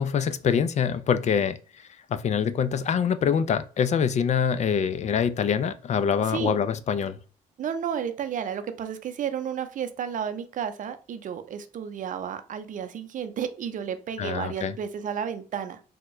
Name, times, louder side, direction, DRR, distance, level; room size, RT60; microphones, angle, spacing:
voice 1, 0.0-7.2 14.2-14.8, left 7 dB, 50° left, 0.4 m, -25 dB
voice 2, 7.6-15.8, right 8 dB, 60° right, 0.5 m, -32 dB
3.5 x 2.2 x 3.0 m
supercardioid pair, 70°, 15 cm